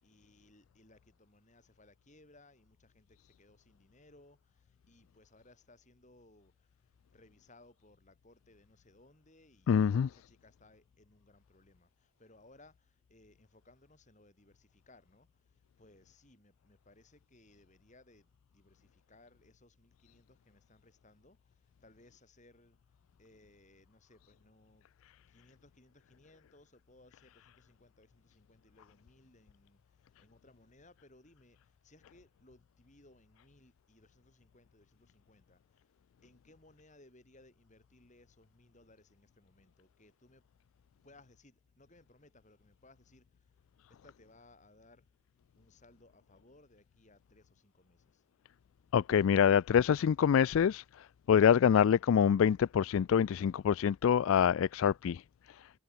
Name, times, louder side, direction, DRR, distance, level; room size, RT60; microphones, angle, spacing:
voice 1, 0.0-22.8 23.2-24.9 25.3-35.9 36.2-40.5 41.0-43.5 43.9-45.1 45.6-48.2, left 2 dB, 35° left, 6.1 m, -63 dB
voice 2, 9.7-10.1 48.9-50.8 51.3-55.2, left 8 dB, 70° left, 0.3 m, -25 dB
head